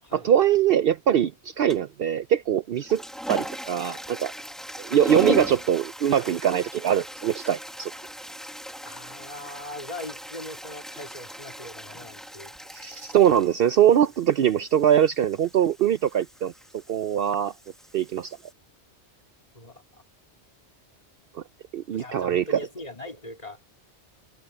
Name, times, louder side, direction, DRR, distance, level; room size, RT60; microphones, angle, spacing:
voice 1, 0.1-3.0 3.3-4.3 4.8-7.9 12.7-16.5 16.9-17.5 17.9-18.4 21.3-21.4 21.7-22.6, right 10 dB, 65° right, 0.7 m, -22 dB
sound 1, 1.7-2.0 2.7-18.5, equal, ahead, 1.5 m, -38 dB
voice 2, 8.8-12.5 19.5-19.8 21.9-23.7, left 1 dB, 35° left, 3.4 m, -40 dB
omnidirectional pair, 1.2 m